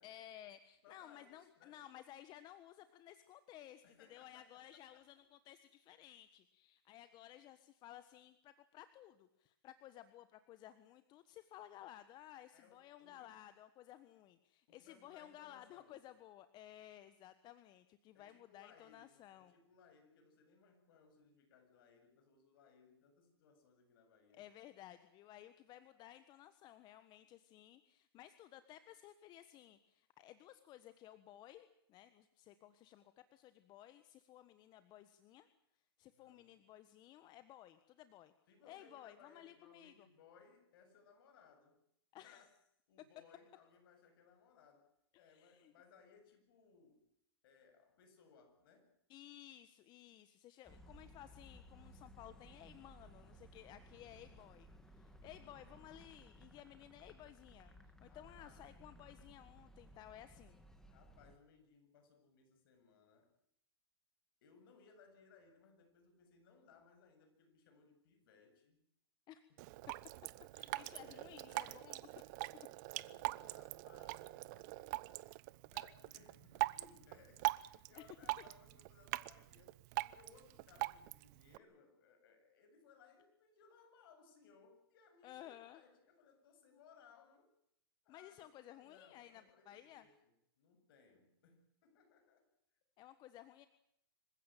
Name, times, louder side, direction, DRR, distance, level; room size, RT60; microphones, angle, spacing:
voice 1, 0.0-3.8 4.1-19.5 24.3-35.5 36.0-38.3 38.7-40.1 42.1-42.4 45.1-45.7 49.1-60.6 69.3-69.4 70.5-72.0 72.5-72.7 77.9-78.1 85.2-85.8 88.1-90.1 93.0-93.7, left 12 dB, 35° left, 12 dB, 1.4 m, -57 dB
voice 2, 0.8-1.9 3.8-5.1 12.5-13.4 14.7-16.0 18.1-24.4 36.1-36.5 38.5-41.8 42.1-42.5 42.9-47.1 47.4-48.9 58.0-58.7 60.9-63.3 64.4-68.8 70.6-72.0 72.9-74.9 75.6-87.5 88.0-92.5, left 5 dB, 60° left, 6 dB, 7.9 m, -66 dB
sound 1, 50.7-61.4, equal, 5° left, 2.7 m, -60 dB
Drip, 69.6-81.6, right 22 dB, 45° right, 1.0 m, -43 dB
26.0 x 16.0 x 9.2 m, 0.76 s
hypercardioid pair, 125°, 13 cm